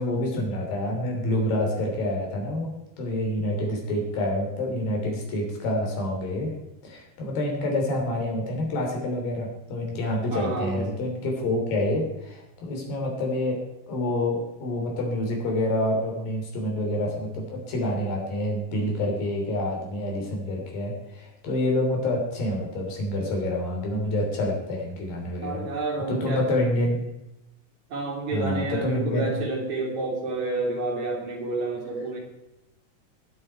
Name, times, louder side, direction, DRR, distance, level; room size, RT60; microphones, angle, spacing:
voice 1, 0.0-2.7 3.0-6.5 6.8-13.6 13.9-25.6 26.1-27.0 28.3-29.3, left 1 dB, 70° left, 1 dB, 4.8 m, -27 dB
voice 2, 10.3-10.8 25.4-26.5 27.9-32.2, right 3 dB, 50° right, -1 dB, 4.2 m, -29 dB
21.0 x 7.8 x 4.6 m, 0.90 s
omnidirectional pair, 4.3 m